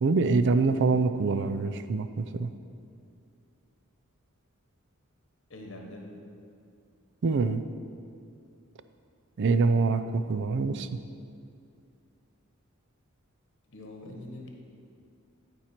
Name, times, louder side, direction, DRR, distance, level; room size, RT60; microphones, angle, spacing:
voice 1, 0.0-2.5 7.2-7.6 9.4-11.0, right 4 dB, 60° right, 11 dB, 0.4 m, -25 dB
voice 2, 5.5-6.2 13.7-14.5, left 1 dB, 65° left, 1 dB, 1.2 m, -43 dB
13.5 x 4.5 x 4.4 m, 2.4 s
head